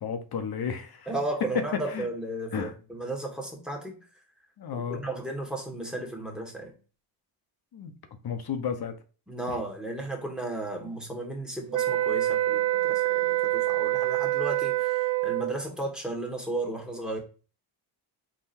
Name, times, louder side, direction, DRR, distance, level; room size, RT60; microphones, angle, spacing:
voice 1, 0.0-1.1 1.5-2.1 2.5-2.7 4.6-5.0 7.7-7.9 8.2-8.9 9.5-9.6, left 6 dB, 50° left, 0.8 m, -32 dB
voice 2, 1.1-4.0 4.7-6.7 9.3-17.2, right 2 dB, ahead, 1.4 m, -34 dB
sound 1, 11.7-15.6, right 16 dB, 40° right, 0.5 m, -26 dB
3.8 x 2.2 x 4.2 m
supercardioid pair, 55°, 50 cm